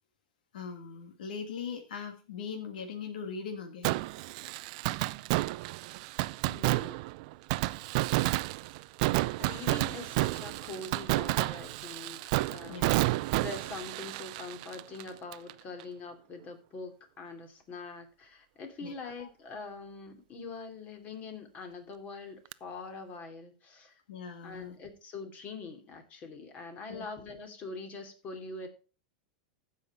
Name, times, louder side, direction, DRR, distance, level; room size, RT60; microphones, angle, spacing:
voice 1, 0.5-4.0 12.7-12.9 18.8-19.3 24.1-24.8 26.9-27.1, left 6 dB, 85° left, 4 dB, 2.2 m, -40 dB
Fireworks, 3.8-15.5 15.8-15.9 22.5-22.6, right 20 dB, 55° right, 0.4 m, -31 dB
voice 2, 6.4-7.0 9.0-12.2 12.5-12.8 13.4-24.0 24.4-28.7, left 3 dB, 35° left, 6 dB, 2.9 m, -43 dB
15.0 x 5.7 x 4.7 m, 0.35 s
supercardioid pair, 135°, 5 cm